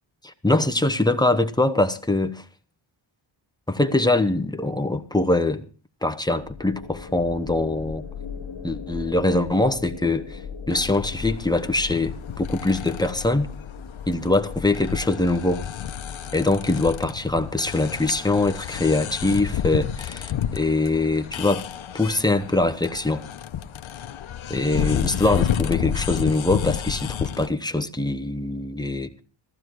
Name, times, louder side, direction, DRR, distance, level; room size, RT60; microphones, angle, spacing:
voice 1, 0.2-2.4 3.7-5.6 6.0-8.0 8.6-10.4 10.7-13.5 14.1-15.6 16.3-21.7 21.9-23.2 24.5-29.2, left 2 dB, 10° left, 1.0 m, -23 dB
sound 1, 6.4-16.8, left 6 dB, 60° left, 2.3 m, -38 dB
sound 2, 10.7-27.5, left 10 dB, 75° left, 0.9 m, -31 dB
15.0 x 14.5 x 4.7 m
wide cardioid pair, 135°, 47 cm